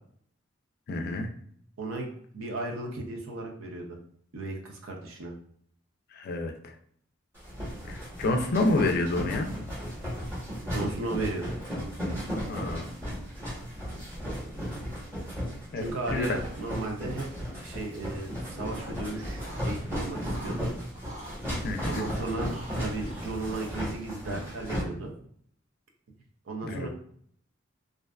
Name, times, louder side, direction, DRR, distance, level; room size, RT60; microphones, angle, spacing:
voice 1, 0.9-1.3 6.1-6.7 7.8-9.5 12.5-12.9 15.7-16.4 21.6-22.0 26.6-26.9, left 2 dB, 50° left, 5 dB, 0.3 m, -29 dB
voice 2, 1.8-4.0 4.3-5.3 10.7-11.6 15.7-17.3 17.6-20.7 21.9-25.1 26.5-26.9, right 2 dB, 80° right, 0 dB, 0.6 m, -35 dB
sound 1, 7.3-24.8, equal, 15° right, 1.0 m, -35 dB
sound 2, 16.1-16.4 16.7-17.3 18.2-19.7 20.1-21.4 21.8-24.7, right 1 dB, 35° right, 0.7 m, -47 dB
2.5 x 2.3 x 2.2 m, 0.62 s
head